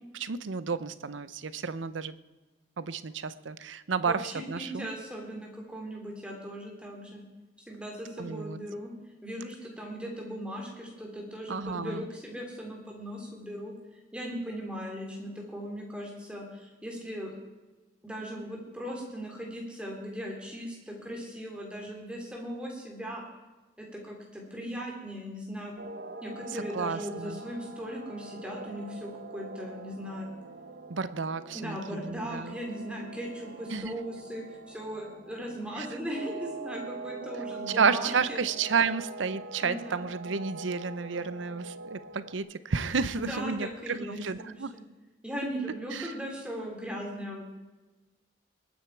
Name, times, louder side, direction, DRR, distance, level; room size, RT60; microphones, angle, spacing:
voice 1, 0.1-2.1 2.8-4.9 8.2-8.6 11.5-12.1 26.5-27.4 30.9-32.6 33.7-33.9 35.8-35.9 37.7-44.7 45.9-46.1, right 5 dB, 85° right, 15 dB, 0.7 m, -31 dB
voice 2, 4.0-7.2 7.7-8.9 9.2-13.7 14.1-17.3 18.0-23.2 23.8-25.7 26.2-30.3 31.5-38.4 39.6-40.1 43.1-44.8 45.2-47.5, equal, 5° right, -1 dB, 3.1 m, -38 dB
sound 1, 25.8-42.4, right 3 dB, 65° right, 1.0 m, -43 dB
20.5 x 9.3 x 4.6 m, 1.2 s
head